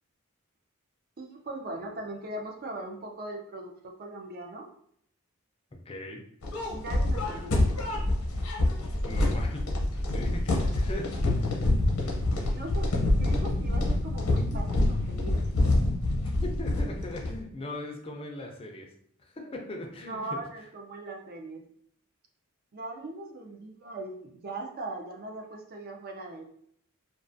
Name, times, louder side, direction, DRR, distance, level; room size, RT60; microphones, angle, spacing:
voice 1, 1.2-4.7 6.7-7.7 12.4-15.4 20.1-21.6 22.7-26.4, right 2 dB, 45° right, 2 dB, 0.5 m, -40 dB
voice 2, 5.9-6.2 9.0-9.6 10.1-11.1 11.4-11.6 16.4-18.9 19.2-20.4, left 1 dB, 25° left, 2 dB, 0.4 m, -39 dB
sound 1, 6.4-17.4, left 1 dB, 85° left, 0.7 m, -26 dB
2.3 x 2.3 x 2.5 m, 0.67 s
head